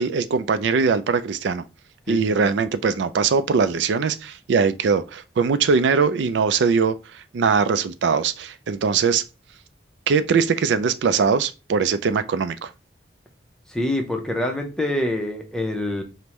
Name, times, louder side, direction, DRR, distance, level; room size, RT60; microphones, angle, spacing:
voice 1, 0.0-1.6 2.1-6.9 7.3-9.2 10.1-12.7, right 5 dB, 85° right, 0.4 m, -21 dB
voice 2, 2.1-2.5 13.7-16.0, left 1 dB, 5° left, 0.6 m, -26 dB
5.2 x 2.1 x 2.9 m
head